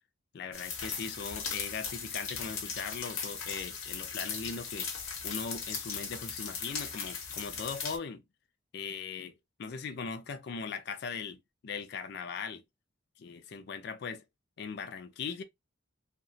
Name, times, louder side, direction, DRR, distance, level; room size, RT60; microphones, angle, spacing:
voice 1, 0.3-4.9 5.2-8.2 8.7-9.3 9.6-12.6 13.2-14.2 14.6-15.4, left 5 dB, 50° left, 0.3 m, -39 dB
sound 1, 0.5-8.0, left 6 dB, 80° left, 0.7 m, -38 dB
2.8 x 2.2 x 2.6 m
head